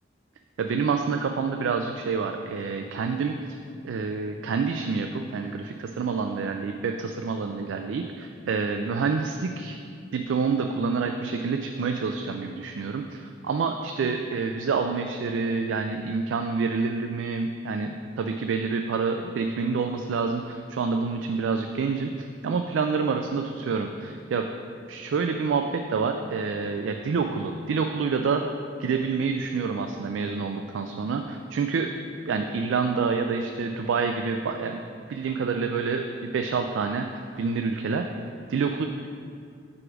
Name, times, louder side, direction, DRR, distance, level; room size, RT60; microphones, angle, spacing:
voice 1, 0.6-3.3 3.8-9.8 10.1-24.5 24.9-28.4 28.8-31.9 32.3-34.8 35.1-38.1 38.5-38.8, right 5 dB, 90° right, 5 dB, 0.3 m, -27 dB
4.9 x 4.8 x 6.1 m, 2.3 s
head